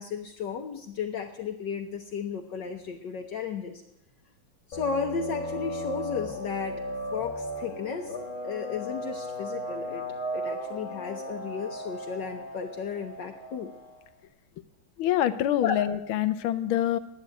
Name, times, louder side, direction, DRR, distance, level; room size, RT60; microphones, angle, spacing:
voice 1, 0.0-3.8 4.7-6.8 7.1-8.1 8.4-10.1 10.3-13.7 15.6-15.8, left 6 dB, 65° left, 3 dB, 1.4 m, -34 dB
sound 1, 4.7-14.0, equal, 40° left, 1.5 m, -36 dB
voice 2, 15.0-17.0, left 11 dB, 80° left, 11 dB, 1.5 m, -25 dB
10.5 x 8.6 x 8.9 m, 0.81 s
omnidirectional pair, 2.3 m